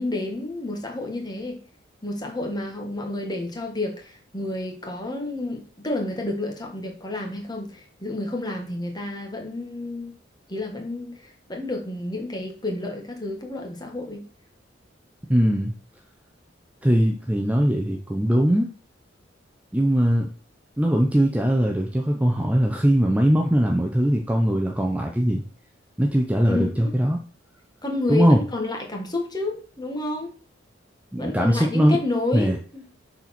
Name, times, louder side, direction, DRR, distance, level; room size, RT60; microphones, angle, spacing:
voice 1, 0.0-1.6 2.0-10.1 10.5-14.3 26.4-26.9 27.8-30.3 31.2-32.9, left 2 dB, 20° left, 2 dB, 1.7 m, -30 dB
voice 2, 15.3-15.7 16.8-18.7 19.7-20.3 20.8-25.4 26.0-27.2 28.1-28.4 31.1-32.0 32.3-32.6, equal, 10° right, 1 dB, 0.7 m, -20 dB
6.6 x 4.4 x 5.9 m, 0.40 s
head